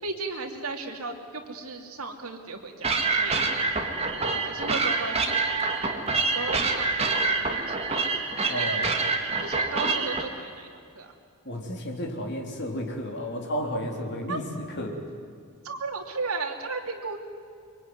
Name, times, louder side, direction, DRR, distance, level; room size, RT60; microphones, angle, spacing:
voice 1, 0.0-3.4 3.9-5.6 5.9-8.0 8.4-8.9 9.4-11.1 14.3-14.4 15.6-17.2, right 3 dB, 75° right, 3 dB, 2.8 m, -35 dB
sound 1, 2.8-10.2, right 3 dB, 30° right, 2.0 m, -26 dB
voice 2, 8.5-8.9 11.5-14.9, equal, 50° left, 0 dB, 3.6 m, -32 dB
24.5 x 23.5 x 9.6 m, 2.2 s
head